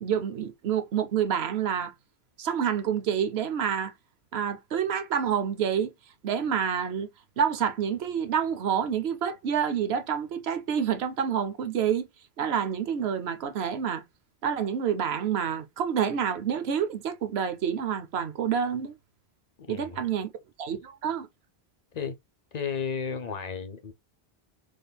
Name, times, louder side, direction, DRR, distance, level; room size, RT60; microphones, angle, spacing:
voice 1, 0.0-1.9 2.4-3.9 4.3-5.9 6.2-7.1 7.4-12.1 12.4-14.0 14.4-18.9 19.7-20.3 20.6-21.3, right 8 dB, 85° right, 1.0 m, -28 dB
voice 2, 19.7-20.0 21.9-22.2 22.5-23.9, left 6 dB, 50° left, 0.6 m, -33 dB
3.7 x 3.3 x 2.2 m
omnidirectional pair, 1.0 m